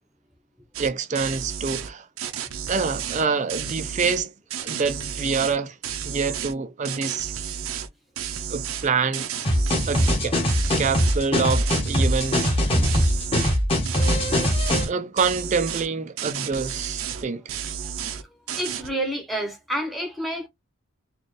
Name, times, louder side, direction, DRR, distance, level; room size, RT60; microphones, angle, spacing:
sound 1, 0.7-0.9 1.1-1.9 2.2-4.2 4.5-5.6 5.8-6.5 6.8-7.9 8.2-10.2 10.5-11.2 11.5-12.6 12.8-13.6 13.9-14.9 15.2-15.9 16.2-17.2 17.5-18.2 18.5-18.9, right 8 dB, 75° right, 0.6 m, -32 dB
voice 1, 0.8-2.1 2.7-4.3 4.6-5.8 6.0-7.3 8.5-9.3 9.9-10.4 10.8-12.8 14.9-17.4, right 5 dB, 30° right, 0.4 m, -26 dB
sound 2, 9.4-14.9, equal, 25° left, 1.2 m, -22 dB
voice 2, 18.6-20.5, right 1 dB, ahead, 0.9 m, -29 dB
4.2 x 2.3 x 3.2 m
head